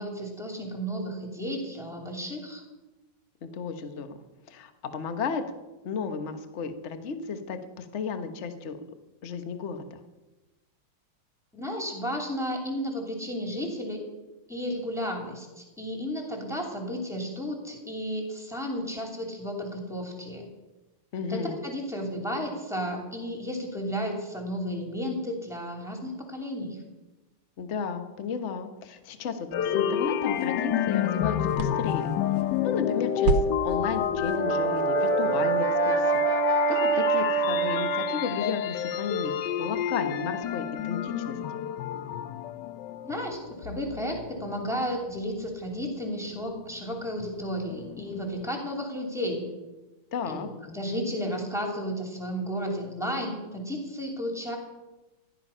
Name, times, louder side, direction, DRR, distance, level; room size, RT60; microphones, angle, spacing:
voice 1, 0.0-2.6 11.5-14.0 14.5-20.5 21.3-26.8 43.0-49.5 50.3-54.6, equal, ahead, 1 dB, 2.8 m, -33 dB
voice 2, 3.4-4.2 4.5-5.4 5.8-8.8 9.2-10.0 21.1-21.6 27.6-32.1 32.6-36.1 36.7-39.3 39.6-41.4 50.1-50.5, left 5 dB, 40° left, 8 dB, 1.1 m, -33 dB
sound 1, 29.5-45.3 45.7-48.5, left 9 dB, 70° left, 1.1 m, -30 dB
sound 2, 29.7-36.3, right 6 dB, 80° right, 1.7 m, -35 dB
Brass instrument, 34.1-38.4, right 6 dB, 30° right, 1.3 m, -26 dB
15.5 x 11.5 x 5.6 m, 1.1 s
omnidirectional pair, 2.4 m